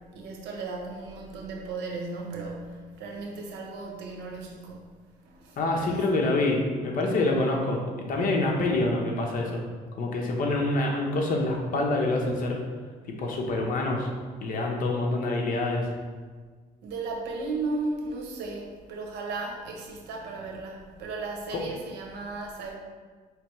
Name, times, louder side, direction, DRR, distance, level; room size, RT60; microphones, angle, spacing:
voice 1, 0.1-4.8 5.2-6.0 16.8-22.7, right 3 dB, 85° right, 0 dB, 0.9 m, -35 dB
voice 2, 5.6-9.6 10.0-12.6 13.2-14.1 14.4-15.9, left 2 dB, 55° left, 0 dB, 0.9 m, -26 dB
5.0 x 3.3 x 3.1 m, 1.5 s
cardioid pair, 110°, 17 cm